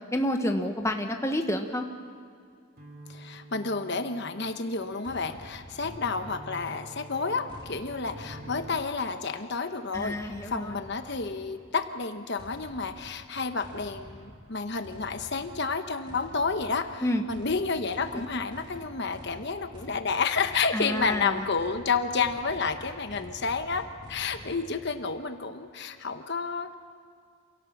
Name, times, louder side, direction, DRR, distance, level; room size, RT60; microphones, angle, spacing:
voice 1, 0.1-1.9 9.9-10.8 17.0-17.2 20.7-21.4, left 1 dB, 15° left, 4 dB, 1.1 m, -29 dB
sound 1, 2.8-8.9, equal, 40° right, 3.2 m, -47 dB
voice 2, 3.1-26.8, left 4 dB, 50° left, 8 dB, 1.0 m, -30 dB
sound 2, 5.0-6.8 7.5-9.2 9.9-11.6 12.4-24.6, equal, 20° right, 2.0 m, -48 dB
27.5 x 17.5 x 7.1 m, 2.3 s
head